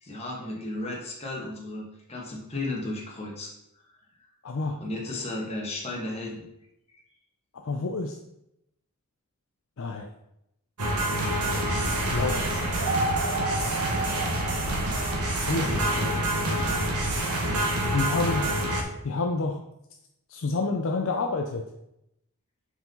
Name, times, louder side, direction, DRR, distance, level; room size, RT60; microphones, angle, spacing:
voice 1, 0.0-3.5 4.8-6.4 6.9-7.0, left 2 dB, 30° left, -2 dB, 1.5 m, -34 dB
voice 2, 4.4-4.8 7.5-8.2 9.8-10.1 11.9-12.9 15.2-16.3 17.9-18.4 19.0-19.6 20.3-21.6, left 3 dB, 60° left, 3 dB, 0.5 m, -29 dB
sound 1, 10.8-18.8, right 1 dB, 90° right, 1.2 m, -27 dB
sound 2, 11.5-17.2, equal, 70° right, 1.3 m, -37 dB
5.6 x 4.8 x 3.9 m, 0.82 s
head